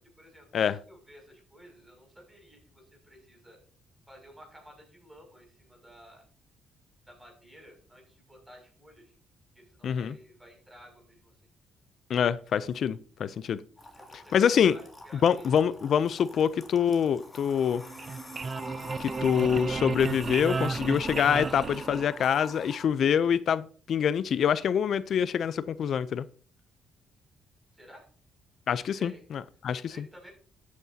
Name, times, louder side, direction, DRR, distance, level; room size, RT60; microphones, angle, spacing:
voice 1, 0.0-3.6 4.1-6.2 7.1-9.2 9.5-11.3 14.0-15.5 27.7-28.0 28.8-29.2 29.7-30.3, equal, 10° right, 1 dB, 6.4 m, -53 dB
voice 2, 9.8-10.1 12.1-13.6 14.3-14.8 15.2-17.8 19.0-26.2 28.7-30.0, left 8 dB, 60° left, 17 dB, 0.5 m, -25 dB
sound 1, 13.8-22.8, left 1 dB, 20° left, 2.9 m, -46 dB
sound 2, 17.8-22.5, right 4 dB, 40° right, 0.5 m, -33 dB
13.0 x 9.5 x 2.8 m, 0.42 s
cardioid pair, 90°, 0 cm